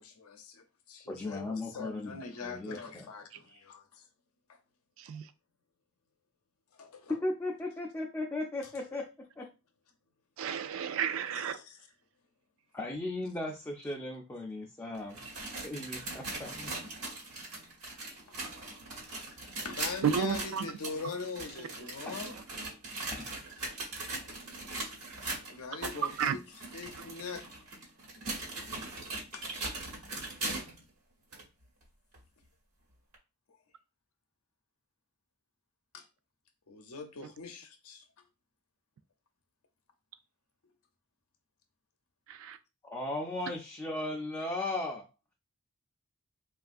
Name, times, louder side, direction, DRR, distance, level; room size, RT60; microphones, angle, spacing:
voice 1, 0.0-4.1 4.5-4.6 6.7-7.2 11.3-11.8 16.5-16.6 18.3-18.4 18.9-22.3 24.1-24.3 25.5-26.4 26.7-27.5 29.3-29.4 35.9-36.0 36.7-38.0, left 4 dB, 85° left, 0.6 m, -43 dB
voice 2, 1.1-3.1 3.5-3.6 7.1-9.1 9.4-9.5 12.7-16.7 22.0-22.2 23.1-23.3 24.1-24.2 42.8-45.0, left 2 dB, 10° left, 0.3 m, -37 dB
voice 3, 5.0-5.3 10.4-11.6 20.0-20.7 22.3-22.4 25.9-26.4 42.3-42.6, right 7 dB, 65° right, 0.3 m, -32 dB
sound 1, 14.9-30.8 31.3-31.4 32.1-32.2 33.1-33.2, right 2 dB, 85° right, 1.2 m, -40 dB
3.2 x 2.4 x 2.5 m
head